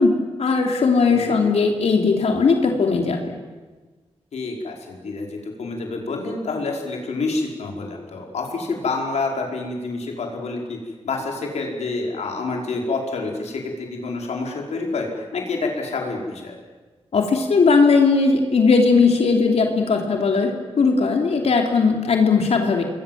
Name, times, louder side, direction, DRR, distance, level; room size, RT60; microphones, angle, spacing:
voice 1, 0.0-3.3 17.1-20.5 20.8-22.8, left 4 dB, 75° left, 2 dB, 3.2 m, -18 dB
voice 2, 1.1-1.4 4.3-10.8 11.0-16.6, left 3 dB, 90° left, 0 dB, 5.4 m, -28 dB
28.0 x 21.5 x 7.6 m, 1.3 s
wide cardioid pair, 100°, 11 cm